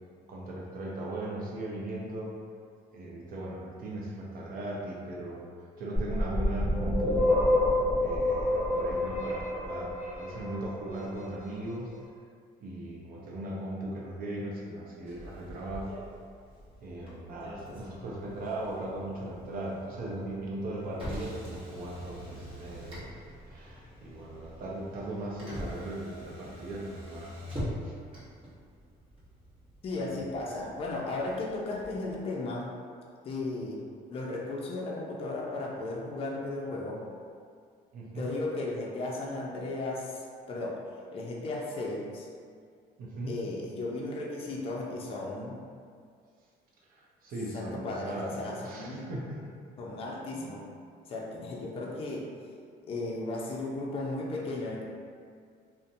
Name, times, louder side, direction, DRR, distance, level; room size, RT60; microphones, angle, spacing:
voice 1, 0.3-2.3 2.9-5.4 5.8-7.4 8.0-11.9 12.6-16.0 16.8-27.3 27.8-27.9 37.9-38.3 43.0-43.3 46.8-49.5, right 1 dB, 60° right, -3 dB, 0.6 m, -38 dB
sound 1, 6.0-10.8, left 1 dB, 10° right, 1.2 m, -27 dB
Motor vehicle (road), 15.1-32.2, equal, 30° right, 1.0 m, -44 dB
voice 2, 29.8-32.7 33.2-33.8 34.1-37.0 38.1-40.8 41.1-42.3 43.3-45.6 47.5-49.1 49.8-50.7 51.1-52.3 52.9-54.8, left 2 dB, 35° left, -3 dB, 0.4 m, -35 dB
2.6 x 2.1 x 2.6 m, 2.2 s
cardioid pair, 110°, 17 cm